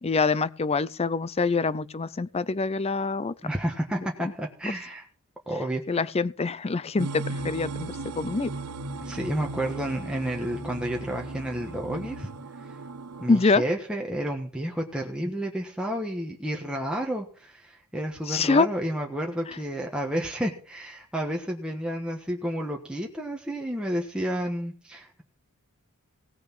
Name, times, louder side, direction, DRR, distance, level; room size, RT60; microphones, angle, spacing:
voice 1, 0.0-3.3 5.9-8.5 13.3-13.6 18.3-18.7, left 4 dB, 25° left, 0.5 m, -25 dB
voice 2, 3.4-5.0 5.5-6.1 9.0-12.3 12.6-12.8 13.2-25.2, right 1 dB, 5° right, 1.4 m, -31 dB
sound 1, 7.0-13.5, right 3 dB, 90° right, 0.7 m, -37 dB
sound 2, 7.4-12.5 13.1-13.2, left 1 dB, 70° left, 2.1 m, -45 dB
17.0 x 6.4 x 6.2 m
head